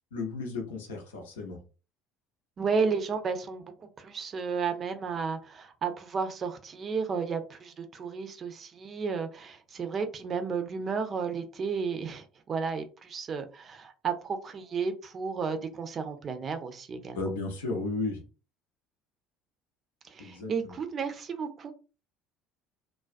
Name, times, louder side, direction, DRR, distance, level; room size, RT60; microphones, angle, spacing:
voice 1, 0.1-1.6 17.1-18.2 20.2-20.7, left 3 dB, 70° left, 2 dB, 0.6 m, -34 dB
voice 2, 2.6-17.2 20.0-21.7, right 5 dB, 35° right, 7 dB, 0.5 m, -33 dB
2.3 x 2.2 x 2.4 m, 0.34 s
figure-of-eight pair, 60°, 0 cm